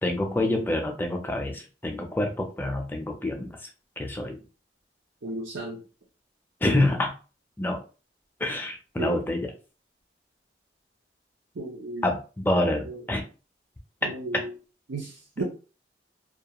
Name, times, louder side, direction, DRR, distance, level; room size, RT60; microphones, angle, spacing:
voice 1, 0.0-3.7 4.0-4.4 6.6-7.1 7.6-7.8 8.4-9.5 12.0-13.2 14.0-14.1, left 1 dB, 10° left, 2 dB, 0.4 m, -27 dB
voice 2, 5.2-5.8 9.0-9.2 11.6-12.1 12.9-13.0 14.0-14.5 14.9-15.4, right 2 dB, 80° right, -3 dB, 0.6 m, -34 dB
2.3 x 2.3 x 2.8 m, 0.35 s
head